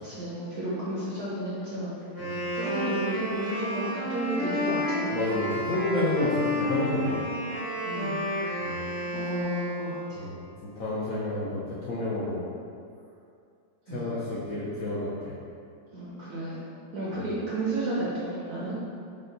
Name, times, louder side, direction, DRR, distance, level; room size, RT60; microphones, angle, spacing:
voice 1, 0.0-1.9 2.5-5.1 7.8-8.2 9.1-10.2 13.9-14.2 15.9-16.6 16.9-18.7, right 1 dB, 70° right, -7 dB, 0.9 m, -32 dB
Wind instrument woodwind instrument, 2.0-10.2, left 1 dB, 45° left, 0.8 m, -31 dB
voice 2, 5.1-7.3 8.6-8.9 10.2-10.4 10.8-12.4 13.9-15.3 17.2-17.3, left 2 dB, 85° left, -8 dB, 0.7 m, -30 dB
5.3 x 2.2 x 3.9 m, 2.5 s
omnidirectional pair, 2.3 m